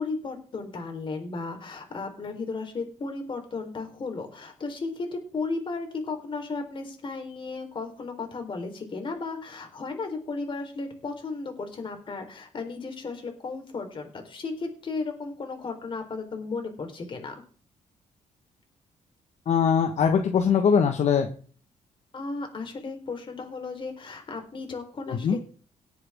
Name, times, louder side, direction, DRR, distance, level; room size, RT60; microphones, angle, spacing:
voice 1, 0.0-17.3 22.1-25.4, left 3 dB, 40° left, 5 dB, 3.9 m, -35 dB
voice 2, 19.5-21.3 25.1-25.4, left 7 dB, 60° left, 5 dB, 1.4 m, -22 dB
18.0 x 8.0 x 3.6 m, 0.41 s
cardioid pair, 115°, 13 cm